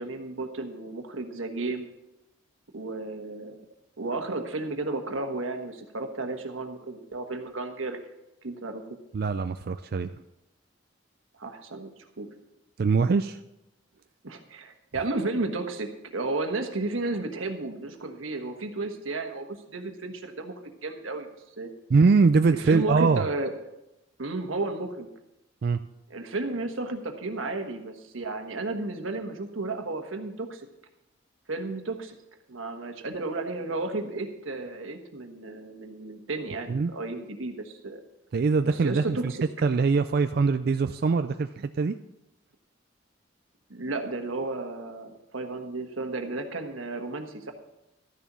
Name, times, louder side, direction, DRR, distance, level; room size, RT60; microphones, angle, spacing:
voice 1, 0.0-1.9 2.7-3.6 4.0-8.0 8.4-9.0 11.4-12.3 14.2-21.3 21.6-21.7 22.6-23.5 24.2-25.1 26.1-30.6 31.5-32.1 32.5-38.0 38.8-39.4 43.7-45.1 45.3-47.5, right 2 dB, 90° right, 5 dB, 1.4 m, -33 dB
voice 2, 9.1-10.1 12.8-13.4 21.9-23.3 25.6-25.8 36.7-36.9 38.3-39.3 39.6-42.0, right 4 dB, 50° right, 9 dB, 0.3 m, -23 dB
12.5 x 6.8 x 6.2 m, 0.89 s
head